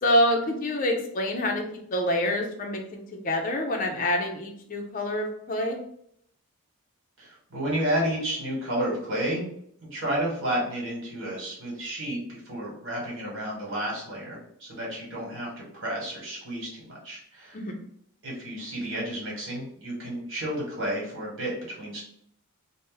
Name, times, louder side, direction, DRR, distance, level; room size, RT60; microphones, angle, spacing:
voice 1, 0.0-1.6 1.9-5.8 17.5-17.7, left 1 dB, 35° left, 2 dB, 0.4 m, -26 dB
voice 2, 7.2-9.4 9.8-15.5 15.7-17.6 18.2-21.5 21.8-22.0, right 1 dB, 60° right, -4 dB, 1.3 m, -31 dB
2.6 x 2.0 x 3.8 m, 0.68 s
head